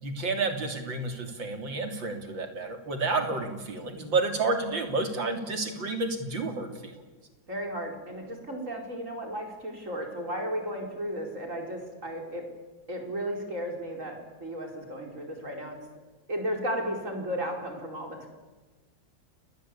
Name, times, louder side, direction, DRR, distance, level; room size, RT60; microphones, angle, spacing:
voice 1, 0.0-7.0, right 3 dB, 80° right, 5 dB, 3.8 m, -30 dB
voice 2, 7.5-12.4 12.9-15.8 16.3-18.3, equal, 40° right, 2 dB, 5.3 m, -34 dB
29.0 x 20.5 x 8.6 m, 1.3 s
omnidirectional pair, 2.0 m